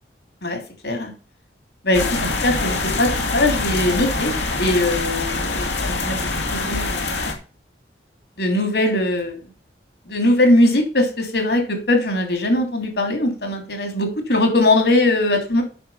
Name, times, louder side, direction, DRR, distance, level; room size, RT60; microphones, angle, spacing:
voice 1, 0.4-1.1 1.8-7.2 8.4-9.4 10.1-11.6 11.9-15.6, left 1 dB, 70° left, 4 dB, 3.2 m, -20 dB
sound 1, 1.9-7.3, left 3 dB, 90° left, 2.7 m, -24 dB
9.3 x 6.3 x 5.7 m, 0.36 s
head